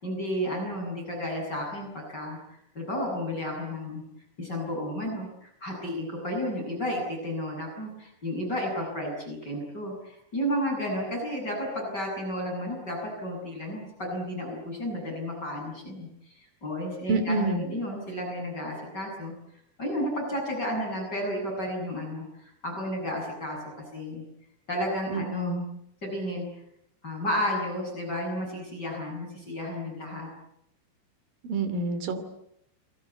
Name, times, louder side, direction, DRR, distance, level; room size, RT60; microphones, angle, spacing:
voice 1, 0.0-4.0 4.4-19.3 19.8-24.2 24.7-25.6 26.0-26.4 27.0-30.3, equal, 20° left, 0 dB, 8.1 m, -32 dB
voice 2, 17.1-17.6 25.1-25.6 31.5-32.2, right 3 dB, 50° right, 10 dB, 3.9 m, -27 dB
29.5 x 23.5 x 8.2 m, 0.76 s
omnidirectional pair, 5.8 m